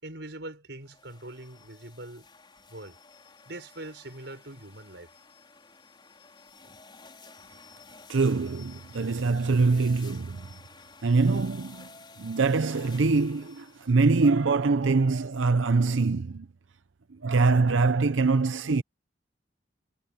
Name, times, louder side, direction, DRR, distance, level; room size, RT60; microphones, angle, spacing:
voice 1, 0.0-2.3 2.7-3.0 3.5-5.1 6.6-6.7, right 1 dB, 65° right, 6.0 m, -42 dB
sound 1, 0.8-14.1, left 4 dB, 25° left, 4.4 m, -52 dB
voice 2, 8.1-10.5 11.0-11.9 12.2-16.5 17.2-18.8, right 3 dB, 85° right, 0.7 m, -24 dB
head